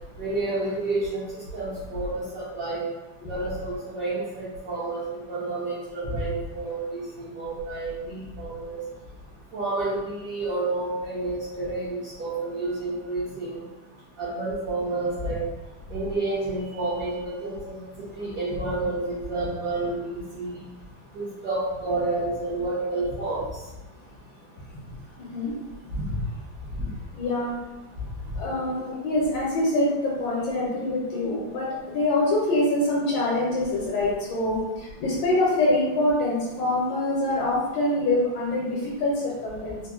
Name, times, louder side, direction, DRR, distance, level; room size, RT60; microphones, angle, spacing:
voice 1, 0.2-1.2 1.5-2.8 3.3-5.0 5.3-8.8 9.5-13.6 14.2-15.4 15.9-17.8 18.1-20.6 21.1-23.4 26.1-26.2 26.8-26.9, right 2 dB, 60° right, -10 dB, 1.0 m, -29 dB
voice 2, 27.1-27.6 28.4-39.8, left 1 dB, 80° left, -6 dB, 1.4 m, -25 dB
3.6 x 2.1 x 2.3 m, 1.1 s
omnidirectional pair, 2.1 m